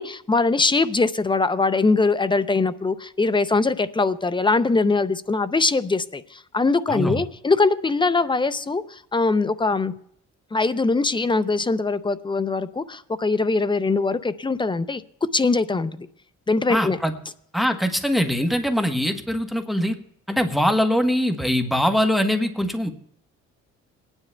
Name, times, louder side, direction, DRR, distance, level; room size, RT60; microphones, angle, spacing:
voice 1, 0.0-9.9 10.5-15.0 15.3-16.1 16.5-17.0, left 3 dB, 15° left, 14 dB, 0.5 m, -22 dB
voice 2, 6.9-7.2 16.7-17.1 17.5-19.9 20.3-22.9, equal, ahead, 6 dB, 1.0 m, -22 dB
27.5 x 9.8 x 2.2 m, 0.73 s
cardioid pair, 90°, 30 cm